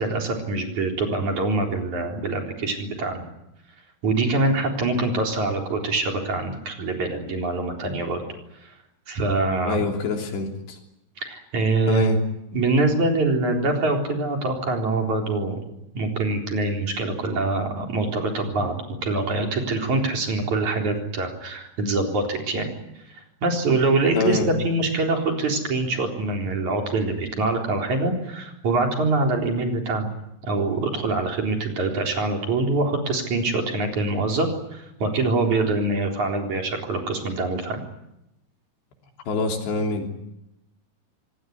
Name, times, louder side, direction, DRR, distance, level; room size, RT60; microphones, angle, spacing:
voice 1, 0.0-3.3 4.0-8.2 8.6-8.7 9.1-9.8 11.2-12.1 12.5-15.6 16.0-22.7 23.4-30.1 30.4-37.8, right 2 dB, 45° right, 2 dB, 5.1 m, -24 dB
voice 2, 9.7-10.8 11.9-12.2 24.1-24.5 39.3-40.1, left 4 dB, 80° left, 3 dB, 5.5 m, -25 dB
27.0 x 19.5 x 9.6 m, 0.87 s
omnidirectional pair, 4.9 m